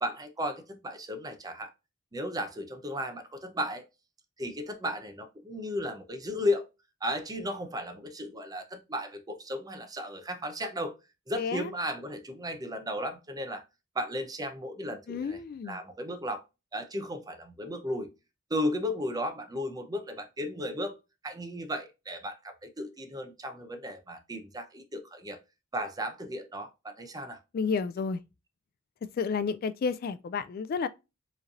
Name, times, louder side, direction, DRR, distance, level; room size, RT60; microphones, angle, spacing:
voice 1, 0.0-1.7 2.1-3.8 4.4-6.7 7.0-10.9 11.3-13.6 13.9-15.4 15.7-16.4 16.7-18.1 18.5-20.9 21.2-25.4 25.7-27.4, equal, 20° right, 0.7 m, -35 dB
voice 2, 11.4-11.7 15.1-15.8 27.5-28.2 29.2-30.9, left 5 dB, 45° left, 0.3 m, -31 dB
4.9 x 3.2 x 2.5 m
head